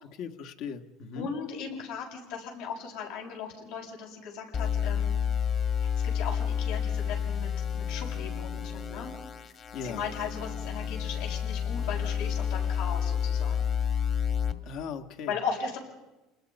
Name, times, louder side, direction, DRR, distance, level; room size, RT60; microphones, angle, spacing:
voice 1, 0.0-1.3 9.7-10.0 14.6-15.3, left 6 dB, 60° left, 7 dB, 1.7 m, -38 dB
voice 2, 1.1-5.2 6.0-9.1 9.8-13.7 15.3-15.8, left 6 dB, 85° left, -1 dB, 7.4 m, -37 dB
sound 1, 4.5-14.5, left 8 dB, 40° left, 1.9 m, -30 dB
29.5 x 21.0 x 5.4 m, 1.0 s
supercardioid pair, 120°, 0 cm